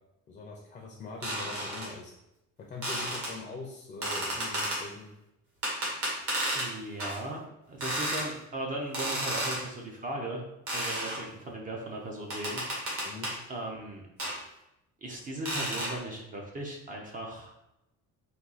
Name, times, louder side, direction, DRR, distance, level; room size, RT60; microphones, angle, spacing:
voice 1, 0.3-2.1 2.7-5.1 13.0-13.3, left 3 dB, 25° left, -1 dB, 0.5 m, -42 dB
sound 1, 1.2-1.9 2.8-3.3 4.0-4.8 5.6-6.7 7.0-7.2 7.8-8.3 8.9-9.6 10.7-11.2 12.3-13.4 14.2-14.4 15.5-16.0, right 1 dB, 45° right, 1.6 m, -32 dB
voice 2, 6.5-7.4 7.7-10.4 10.7-13.0 13.5-14.0 15.0-17.5, right 1 dB, 25° right, 0 dB, 0.6 m, -37 dB
4.2 x 2.7 x 4.0 m, 0.86 s
cardioid pair, 175°, 31 cm